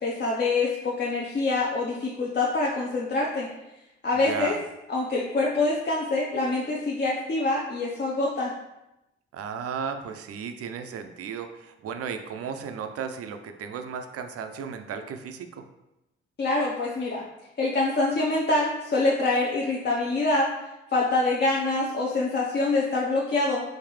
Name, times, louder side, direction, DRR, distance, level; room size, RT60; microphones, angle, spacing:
voice 1, 0.0-3.5 4.0-4.5 4.9-8.5 16.4-17.2 17.6-20.5 20.9-23.6, left 2 dB, 35° left, -4 dB, 0.6 m, -25 dB
voice 2, 4.3-4.6 9.3-15.7, right 6 dB, 50° right, 7 dB, 0.5 m, -35 dB
3.9 x 2.6 x 3.1 m, 0.92 s
hypercardioid pair, 45°, 31 cm